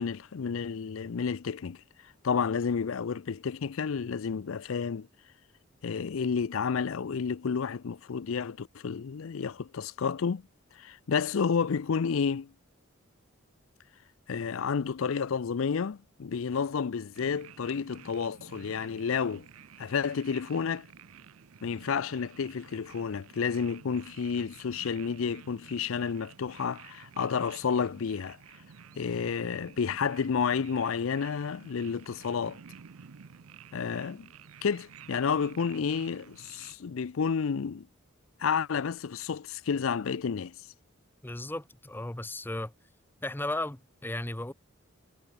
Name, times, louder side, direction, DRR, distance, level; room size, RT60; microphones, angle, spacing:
voice 1, 0.0-1.8 2.2-5.1 5.8-10.4 10.8-12.5 14.3-19.5 19.8-20.9 21.6-28.4 29.0-32.6 33.7-34.3 34.6-37.9 38.4-40.5, left 6 dB, 65° left, 0.5 m, -30 dB
sound 1, 17.1-36.8, right 7 dB, 85° right, 0.6 m, -52 dB
voice 2, 41.2-42.7 43.2-44.5, left 1 dB, 10° left, 0.8 m, -35 dB
head